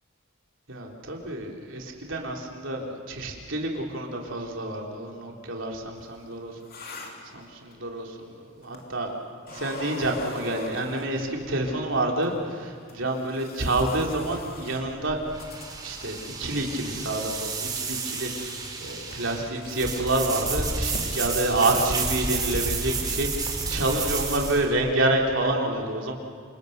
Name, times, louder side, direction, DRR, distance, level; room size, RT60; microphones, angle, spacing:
voice 1, 0.7-6.5 6.8-7.0 7.3-9.1 9.5-15.2 15.8-23.3 23.7-26.1, right 2 dB, 65° right, 0 dB, 3.7 m, -28 dB
sound 1, 6.0-7.9 8.6-9.1 9.4-11.6 12.2-12.3 12.9-16.3 16.6-17.2 17.5-19.7 20.1-20.3 20.6-20.7 20.9-21.1, left 3 dB, 45° left, 3.1 m, -43 dB
sound 2, 14.5-24.7, right 4 dB, 20° right, 3.8 m, -31 dB
28.0 x 27.0 x 6.8 m, 2.2 s
head